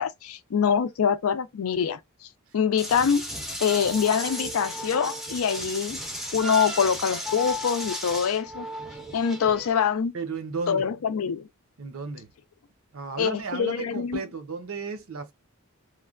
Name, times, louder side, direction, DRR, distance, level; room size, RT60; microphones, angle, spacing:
voice 1, 0.0-2.0 2.5-3.3 3.6-6.0 6.3-8.7 9.1-10.1 10.7-11.5 13.2-14.2, left 7 dB, 80° left, 0.4 m, -24 dB
sound 1, 2.8-9.7, equal, ahead, 0.5 m, -34 dB
voice 2, 10.1-10.9 11.8-12.3 12.9-15.3, right 4 dB, 70° right, 0.7 m, -34 dB
3.1 x 2.2 x 2.4 m
head